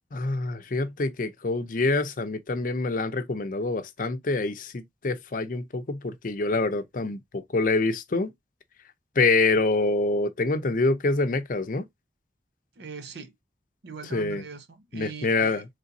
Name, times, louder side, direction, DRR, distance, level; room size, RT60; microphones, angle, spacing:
voice 1, 0.1-8.3 9.2-11.8 14.1-14.4 14.9-15.7, left 3 dB, 50° left, 0.6 m, -26 dB
voice 2, 12.8-13.3 13.8-15.6, right 5 dB, 70° right, 0.7 m, -41 dB
4.0 x 3.3 x 2.6 m
head